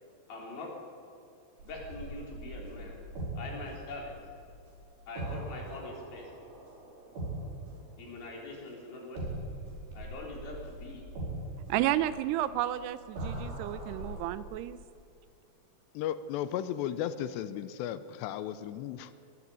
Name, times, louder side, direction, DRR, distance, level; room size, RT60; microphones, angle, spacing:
voice 1, 0.3-0.7 1.6-2.9 3.4-4.2 5.1-6.3 8.0-9.2 9.9-11.0, left 2 dB, 60° left, -1 dB, 5.6 m, -43 dB
sound 1, 1.6-8.7 9.2-14.2, right 1 dB, 60° right, 6.5 m, -41 dB
voice 2, 11.7-14.8, right 13 dB, 80° right, 14 dB, 2.5 m, -31 dB
voice 3, 15.9-19.1, left 10 dB, 85° left, 13 dB, 2.9 m, -35 dB
21.5 x 14.5 x 9.9 m, 2.5 s
omnidirectional pair, 5.0 m